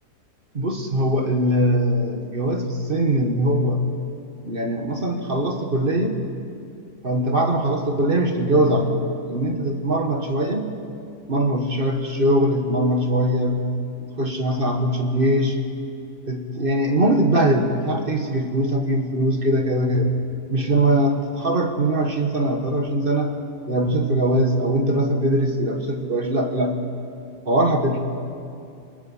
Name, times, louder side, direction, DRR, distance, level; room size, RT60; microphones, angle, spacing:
voice 1, 0.5-3.8 4.4-6.2 7.0-10.7 11.3-13.7 14.0-15.6 16.2-20.2 20.5-23.3 23.7-26.8 27.4-28.0, right 1 dB, 35° right, 4 dB, 1.7 m, -21 dB
25.5 x 19.5 x 5.7 m, 2.5 s
omnidirectional pair, 1.7 m